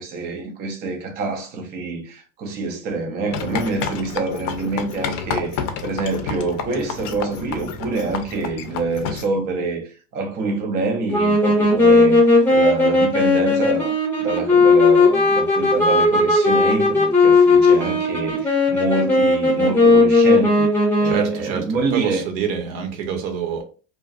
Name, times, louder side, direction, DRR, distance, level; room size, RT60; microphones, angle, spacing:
voice 1, 0.0-13.9 14.2-20.7 21.0-22.2, right 3 dB, 30° right, 0.3 m, -26 dB
sound 1, 3.3-9.3, left 6 dB, 55° left, 0.5 m, -29 dB
sound 2, 11.1-21.4, left 2 dB, 5° left, 0.7 m, -16 dB
voice 2, 21.0-23.6, right 7 dB, 70° right, 0.8 m, -26 dB
2.4 x 2.3 x 2.4 m
supercardioid pair, 130°, 37 cm